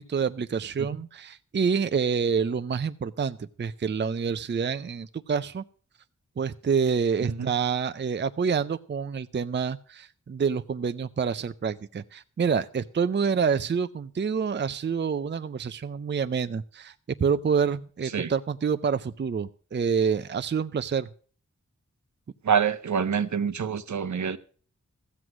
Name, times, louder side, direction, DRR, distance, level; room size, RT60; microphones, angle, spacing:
voice 1, 0.0-5.6 6.4-16.9 17.2-21.1, right 6 dB, 35° right, 0.5 m, -27 dB
voice 2, 7.2-7.5 18.0-18.3 22.4-24.4, right 7 dB, 70° right, 0.8 m, -26 dB
14.0 x 7.9 x 6.0 m
wide cardioid pair, 90°, 30 cm